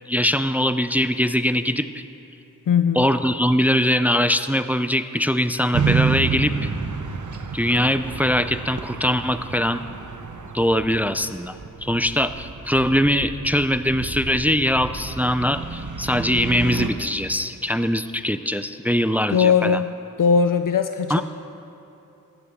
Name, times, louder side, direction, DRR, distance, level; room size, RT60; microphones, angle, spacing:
voice 1, 0.1-1.9 2.9-6.7 7.5-9.8 10.5-11.6 11.8-19.8 21.1-21.2, equal, 5° right, 11 dB, 0.4 m, -22 dB
voice 2, 2.7-3.1 19.3-19.9 20.2-21.2, left 6 dB, 70° left, 9 dB, 0.5 m, -19 dB
sound 1, 5.7-16.9, right 5 dB, 60° right, 0.8 m, -29 dB
15.5 x 13.0 x 3.6 m, 2.9 s
wide cardioid pair, 55°, 33 cm